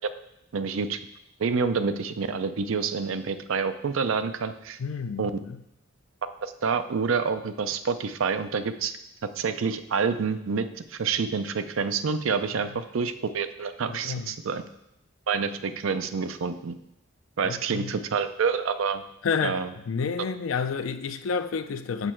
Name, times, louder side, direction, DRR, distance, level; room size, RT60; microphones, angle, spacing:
voice 1, 0.5-1.0 1.4-4.8 5.2-5.3 6.4-8.9 9.4-14.6 15.3-16.8 17.4-19.0 19.4-19.7, right 5 dB, 85° right, 0.5 m, -28 dB
voice 2, 4.8-5.6 13.9-14.3 17.4-17.9 19.2-22.1, left 5 dB, 90° left, 0.5 m, -30 dB
6.7 x 6.1 x 4.4 m
head